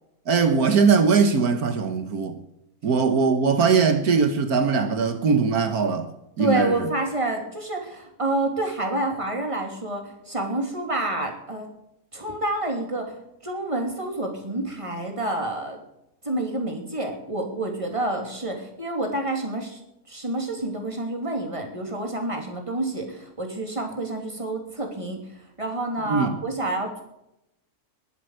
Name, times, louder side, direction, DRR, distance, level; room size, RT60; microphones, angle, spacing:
voice 1, 0.3-2.4 2.8-6.1 6.4-6.9 26.1-26.3, right 5 dB, 80° right, 1.7 m, -21 dB
voice 2, 6.4-11.7 12.1-13.1 13.4-15.8 16.2-19.8 20.1-25.2 25.6-27.0, right 2 dB, 20° right, 3.1 m, -28 dB
21.0 x 7.8 x 6.6 m
omnidirectional pair, 1.6 m